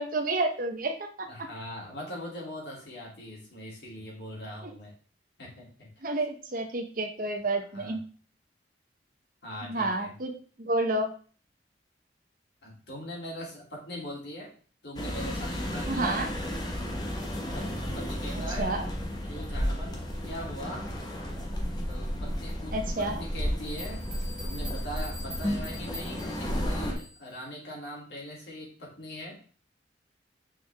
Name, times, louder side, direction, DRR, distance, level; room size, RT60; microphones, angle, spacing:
voice 1, 0.0-1.3 4.6-4.7 6.0-8.0 9.6-10.3 10.6-11.1 15.9-16.3 18.6-18.9 22.7-23.2, right 2 dB, 50° right, 4 dB, 0.9 m, -30 dB
voice 2, 1.3-4.9 5.4-5.9 7.7-8.0 9.4-10.1 12.6-14.5 14.8-16.4 17.5-18.8 19.2-20.9 21.9-24.1 24.4-29.4, equal, 70° left, -3 dB, 2.7 m, -41 dB
sound 1, 15.0-26.9, equal, 25° left, 1.2 m, -33 dB
sound 2, 23.7-27.4, equal, 5° right, 1.6 m, -45 dB
6.1 x 4.8 x 3.4 m, 0.40 s
head